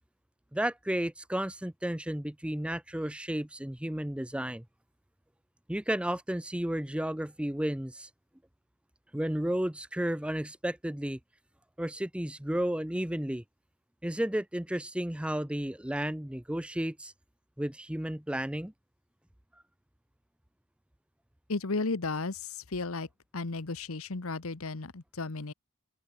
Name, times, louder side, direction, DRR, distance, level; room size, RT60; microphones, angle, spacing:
voice 1, 0.5-4.6 5.7-8.1 9.1-11.2 11.8-13.4 14.0-17.1 17.6-18.7, right 1 dB, 5° right, 0.6 m, -32 dB
voice 2, 21.5-23.1 23.3-25.5, left 3 dB, 65° left, 1.1 m, -34 dB
open air
head